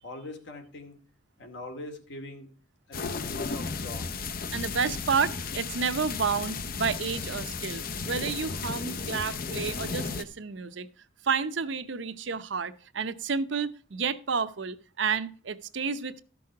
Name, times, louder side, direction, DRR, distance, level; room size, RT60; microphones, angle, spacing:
voice 1, 0.0-1.0 1.4-2.5 2.9-4.2, left 1 dB, 70° left, 5 dB, 2.3 m, -42 dB
sound 1, 2.9-10.2, left 4 dB, 50° left, 0.7 m, -34 dB
voice 2, 4.5-10.9 11.2-16.2, right 5 dB, 75° right, 11 dB, 0.7 m, -30 dB
13.5 x 6.2 x 4.7 m, 0.40 s
head